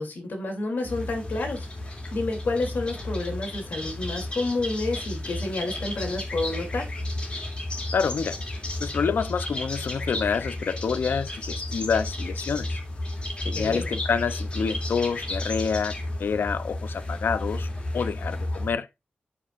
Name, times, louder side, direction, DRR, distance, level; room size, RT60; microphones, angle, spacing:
voice 1, 0.0-6.9 13.5-13.9, left 2 dB, 65° left, 2.8 m, -30 dB
sound 1, 0.8-18.7, left 1 dB, 30° left, 2.6 m, -32 dB
voice 2, 7.9-8.4 8.8-12.8 13.4-17.7 17.9-18.9, left 6 dB, 80° left, 0.6 m, -27 dB
11.0 x 5.7 x 2.5 m
wide cardioid pair, 160°, 3 cm